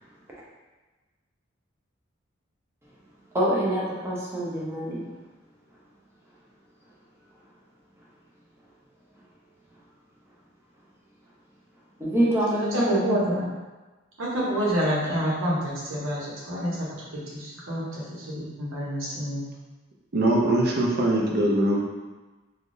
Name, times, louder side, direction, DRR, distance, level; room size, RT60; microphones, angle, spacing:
voice 1, 3.3-5.1 12.0-13.0, right 1 dB, 15° right, -6 dB, 0.7 m, -25 dB
voice 2, 12.7-13.5 14.2-16.8 17.1-19.4, equal, 80° right, -6 dB, 1.0 m, -28 dB
voice 3, 20.1-21.8, right 1 dB, 55° right, -2 dB, 0.6 m, -22 dB
3.3 x 2.3 x 2.6 m, 1.2 s
head